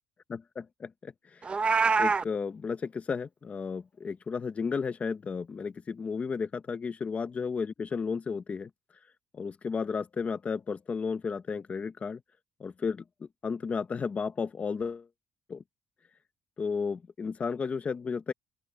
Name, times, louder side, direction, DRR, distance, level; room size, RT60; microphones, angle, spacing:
voice 1, 0.3-1.5 2.0-8.7 9.3-12.2 12.6-15.1 15.5-15.6 16.6-18.3, left 5 dB, 25° left, 1.1 m, -33 dB
Meow, 1.4-2.2, right 4 dB, 20° right, 0.7 m, -24 dB
open air
cardioid pair, 160°, 5 cm